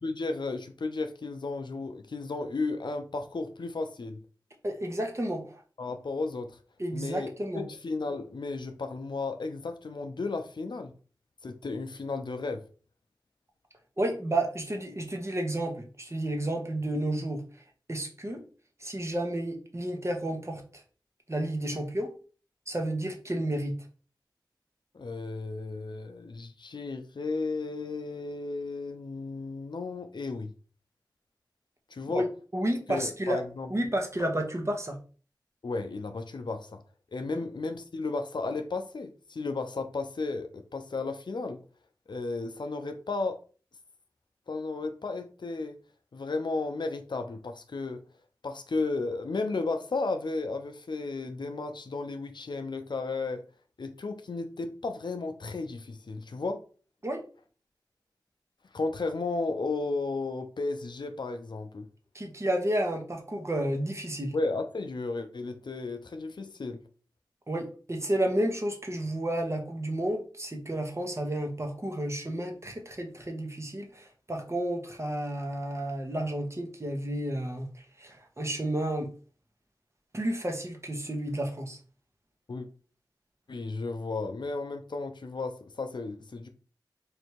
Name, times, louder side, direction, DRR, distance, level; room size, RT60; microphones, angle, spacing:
voice 1, 0.0-4.2 5.8-6.6 6.9-7.3 7.5-10.9 11.4-12.6 24.9-30.5 31.9-32.2 32.9-33.9 35.6-36.8 37.1-41.6 42.1-43.4 44.5-45.8 46.1-48.0 48.4-53.4 53.8-56.6 58.7-61.9 64.3-66.8 82.5-82.7 83.5-86.5, left 3 dB, 70° left, 0.5 m, -34 dB
voice 2, 4.6-5.6 6.8-7.6 14.0-17.4 17.9-18.4 18.8-20.8 21.3-22.1 22.7-23.7 32.1-32.3 32.5-33.4 33.7-35.0 37.3-37.4 57.0-57.2 62.1-64.3 67.5-79.1 80.1-81.8, right 1 dB, 35° right, 1.0 m, -31 dB
3.3 x 2.6 x 4.5 m
wide cardioid pair, 45°, 8 cm